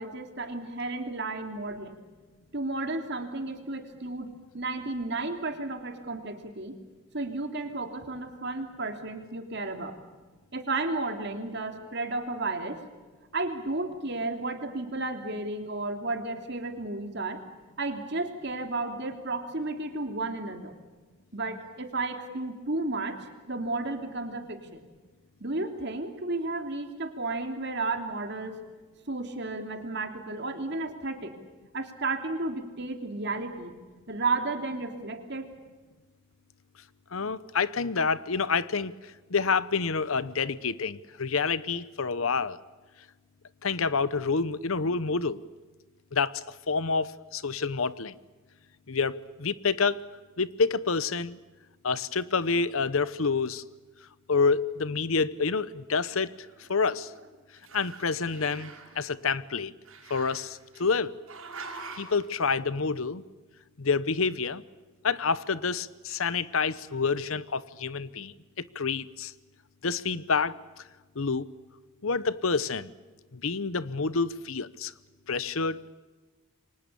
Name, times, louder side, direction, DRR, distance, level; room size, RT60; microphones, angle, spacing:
voice 1, 0.0-2.0 2.5-6.8 7.1-10.0 10.5-12.8 13.3-17.4 17.8-20.7 21.3-23.2 23.5-24.9 25.4-28.6 29.1-31.3 31.7-33.7 34.1-35.5, right 2 dB, 55° right, 5 dB, 3.1 m, -33 dB
voice 2, 37.1-42.6 43.6-45.4 46.1-48.1 48.9-50.0 50.4-51.4 51.8-53.6 54.3-56.3 56.7-57.1 57.7-58.7 59.0-59.7 60.1-61.1 62.0-63.2 63.8-64.6 65.0-68.3 68.7-69.3 69.8-70.6 71.2-71.5 72.0-72.9 73.3-74.9 75.3-75.8, left 4 dB, 75° left, 17 dB, 0.9 m, -28 dB
Growling, 56.1-57.3 57.6-59.0 59.9-60.9 61.3-62.2, right 4 dB, 75° right, 5.6 m, -45 dB
28.5 x 24.5 x 7.0 m, 1.3 s
head